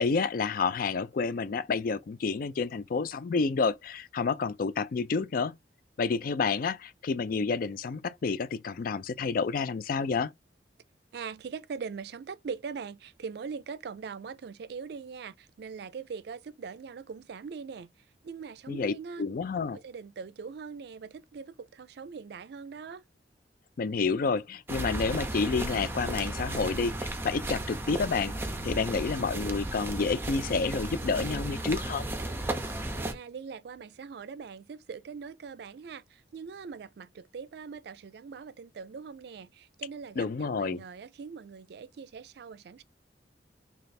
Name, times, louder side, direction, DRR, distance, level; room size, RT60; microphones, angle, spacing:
voice 1, 0.0-5.5 6.0-10.3 18.7-19.8 23.8-28.3 28.6-32.1 40.2-40.8, left 4 dB, 55° left, 0.4 m, -29 dB
voice 2, 11.1-17.9 18.2-19.3 19.7-23.0 32.9-42.8, right 5 dB, 65° right, 0.4 m, -41 dB
sound 1, 24.7-33.1, right 1 dB, 15° right, 0.5 m, -34 dB
3.2 x 2.4 x 4.0 m
head